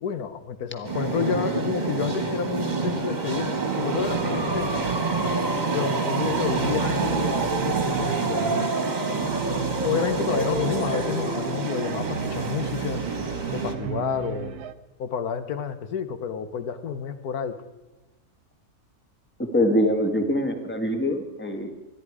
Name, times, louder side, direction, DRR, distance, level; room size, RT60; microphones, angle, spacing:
voice 1, 0.0-4.9 5.7-8.7 9.8-13.0 13.5-14.6 15.0-17.6, left 7 dB, 80° left, 10 dB, 1.5 m, -30 dB
sound 1, 0.8-13.7, right 3 dB, 30° right, 1.7 m, -27 dB
sound 2, 3.5-14.7, right 9 dB, 80° right, 1.2 m, -34 dB
voice 2, 19.5-21.7, left 1 dB, 10° left, 5 dB, 1.4 m, -23 dB
25.5 x 11.0 x 4.9 m, 1.1 s
omnidirectional pair, 1.6 m